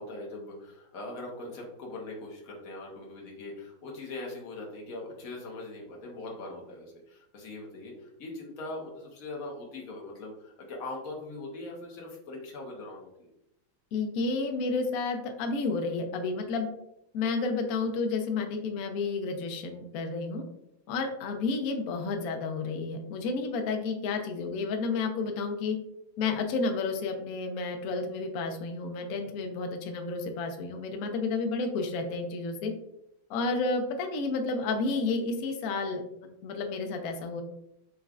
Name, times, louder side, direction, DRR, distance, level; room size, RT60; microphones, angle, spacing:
voice 1, 0.0-13.3, left 2 dB, 55° left, -1 dB, 1.1 m, -41 dB
voice 2, 13.9-16.7 17.1-20.4 20.9-25.8 26.2-32.7 33.3-37.4, left 3 dB, 80° left, 4 dB, 0.8 m, -31 dB
4.5 x 3.1 x 2.4 m, 0.81 s
omnidirectional pair, 2.2 m